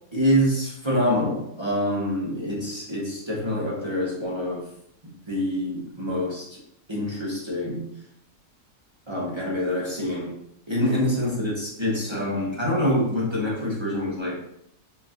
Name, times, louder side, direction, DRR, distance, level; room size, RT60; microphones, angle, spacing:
voice 1, 0.1-4.7 5.0-6.6 6.9-7.9 9.1-10.4 10.7-14.4, equal, 25° right, -5 dB, 0.6 m, -26 dB
5.5 x 2.9 x 2.5 m, 0.76 s
omnidirectional pair, 1.7 m